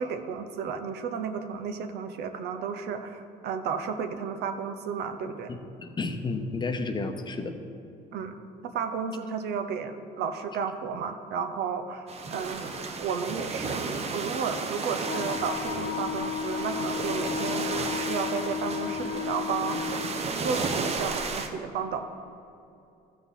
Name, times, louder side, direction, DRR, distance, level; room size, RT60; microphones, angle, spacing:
voice 1, 0.0-5.5 8.1-8.4 8.6-20.0 20.4-22.0, right 6 dB, 75° right, 8 dB, 0.8 m, -33 dB
voice 2, 5.5-7.6, left 3 dB, 25° left, 6 dB, 0.8 m, -32 dB
sound 1, 12.1-21.5, right 4 dB, 40° right, 0.9 m, -33 dB
Wind instrument woodwind instrument, 15.0-20.2, left 8 dB, 65° left, 0.8 m, -33 dB
14.0 x 5.9 x 4.1 m, 2.7 s
cardioid pair, 110°, 17 cm